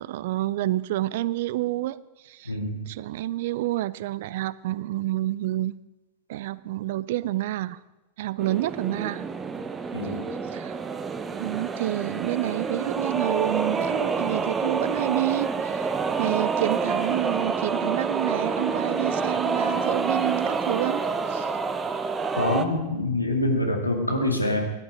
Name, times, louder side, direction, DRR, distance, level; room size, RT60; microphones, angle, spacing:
voice 1, 0.0-2.0 2.2-2.6 2.9-5.8 6.3-7.8 8.2-9.2 10.0-10.2 10.5-10.8 11.3-21.0 21.3-21.5, right 15 dB, 55° right, 20 dB, 0.4 m, -29 dB
voice 2, 2.5-2.8 9.9-10.3 22.4-24.6, left 1 dB, 85° left, 2 dB, 2.1 m, -25 dB
sound 1, 8.4-22.7, right 5 dB, 20° right, 0.8 m, -28 dB
17.0 x 11.5 x 5.0 m, 1.0 s
figure-of-eight pair, 90°, 0 cm